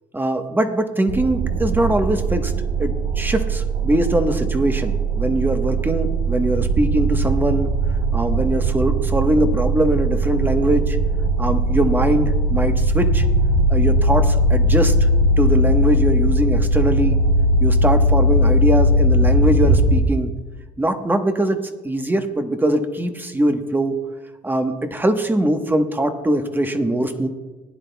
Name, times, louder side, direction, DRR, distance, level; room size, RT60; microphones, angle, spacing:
voice 1, 0.1-2.5 2.8-7.7 8.1-11.0 11.4-13.2 13.7-15.1 15.4-17.2 17.6-20.3 20.8-24.0 24.4-27.3, right 1 dB, 10° right, 6 dB, 1.1 m, -21 dB
sound 1, 1.1-20.0, right 1 dB, 60° right, 1.2 m, -19 dB
20.0 x 10.5 x 2.3 m, 1.2 s
cardioid pair, 110°, 17 cm